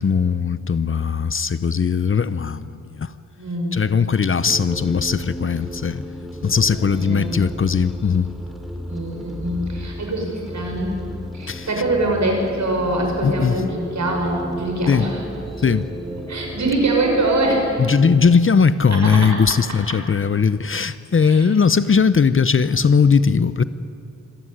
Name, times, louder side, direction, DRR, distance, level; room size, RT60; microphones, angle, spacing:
voice 1, 0.0-3.1 3.7-6.0 6.4-8.3 11.5-11.7 13.2-13.6 14.9-15.1 15.6-15.9 17.8-23.6, left 5 dB, 40° left, 15 dB, 0.7 m, -19 dB
voice 2, 3.4-3.7 6.7-7.4 8.9-10.9 11.3-15.2 16.3-17.8 18.9-19.3 21.2-21.5 22.6-22.8, right 2 dB, 60° right, 1 dB, 6.2 m, -23 dB
sound 1, 4.5-18.2, equal, ahead, 2.9 m, -33 dB
26.0 x 15.5 x 9.9 m, 2.3 s
wide cardioid pair, 115°, 31 cm